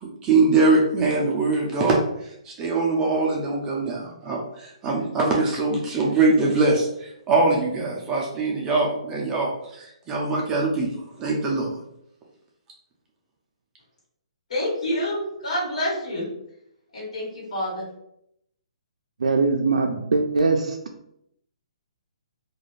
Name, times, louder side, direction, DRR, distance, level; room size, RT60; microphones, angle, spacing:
voice 1, 0.0-2.0 2.4-10.9 11.2-11.7, right 3 dB, 15° right, -2 dB, 0.4 m, -22 dB
voice 2, 14.5-16.3 16.9-17.8, left 1 dB, 70° left, -6 dB, 1.3 m, -27 dB
voice 3, 19.2-20.8, right 3 dB, 90° right, 2 dB, 0.3 m, -21 dB
2.4 x 2.2 x 3.1 m, 0.77 s
hypercardioid pair, 155°, 4 cm